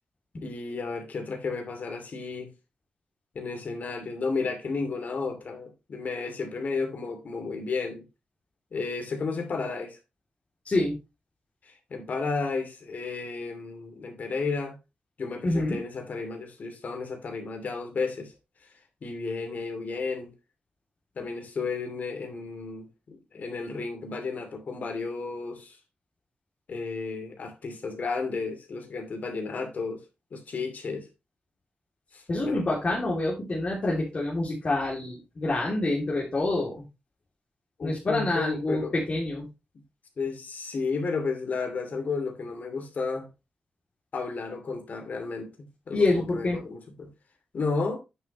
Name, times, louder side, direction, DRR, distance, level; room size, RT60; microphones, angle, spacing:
voice 1, 0.4-2.5 3.3-8.1 8.7-10.0 11.6-14.8 15.2-18.3 19.0-20.3 21.2-25.8 26.7-30.0 30.3-31.1 32.1-32.7 37.8-38.9 40.2-43.3 44.1-47.1 47.5-48.0, left 4 dB, 60° left, 2.7 m, -33 dB
voice 2, 10.6-11.0 15.4-15.8 32.3-36.8 37.8-39.5 45.9-46.6, left 2 dB, 40° left, 2.9 m, -27 dB
9.2 x 6.8 x 3.1 m
wide cardioid pair, 105°, 3 cm